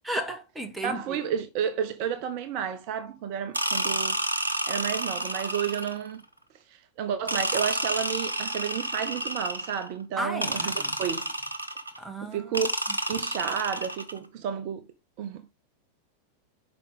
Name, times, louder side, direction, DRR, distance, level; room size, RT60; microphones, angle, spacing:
voice 1, 0.1-1.2 10.2-11.0 12.0-12.7, right 1 dB, 10° right, 1.8 m, -34 dB
voice 2, 0.8-4.2 4.7-6.2 6.7-11.3 12.3-12.7 13.1-14.9 15.2-15.5, right 8 dB, 45° right, 0.7 m, -31 dB
sound 1, 3.5-6.1 7.3-9.9 10.4-12.0 12.5-14.2, right 1 dB, 80° right, 0.9 m, -30 dB
7.6 x 5.2 x 3.6 m
figure-of-eight pair, 90°, 0 cm